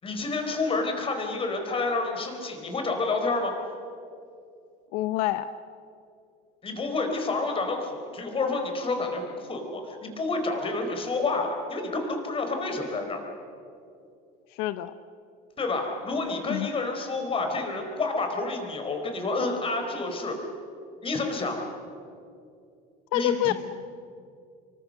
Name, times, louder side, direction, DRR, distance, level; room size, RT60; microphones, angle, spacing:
voice 1, 0.0-3.5 6.6-13.2 15.6-20.4 21.0-21.6 23.1-23.5, left 3 dB, 30° left, 4 dB, 4.4 m, -29 dB
voice 2, 4.9-5.5 14.5-15.0 16.5-16.7 23.1-23.5, left 13 dB, 85° left, 13 dB, 0.8 m, -27 dB
25.5 x 24.0 x 6.7 m, 2.5 s
cardioid pair, 130°, 20 cm